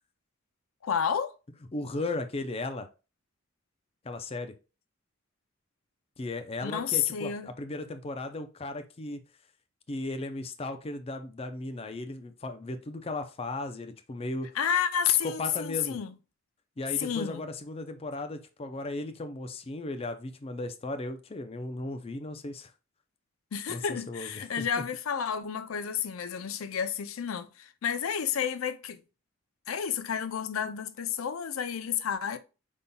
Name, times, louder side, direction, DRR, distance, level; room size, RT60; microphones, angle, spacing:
voice 1, 0.8-1.3 6.6-7.5 14.5-16.1 17.0-17.4 23.5-29.0 29.7-32.4, left 8 dB, 90° left, 0.5 m, -30 dB
voice 2, 1.7-2.9 4.0-4.5 6.2-9.2 9.9-14.5 15.1-16.0 16.8-22.7 23.7-24.8, left 2 dB, 30° left, 0.5 m, -36 dB
5.4 x 4.0 x 2.2 m
head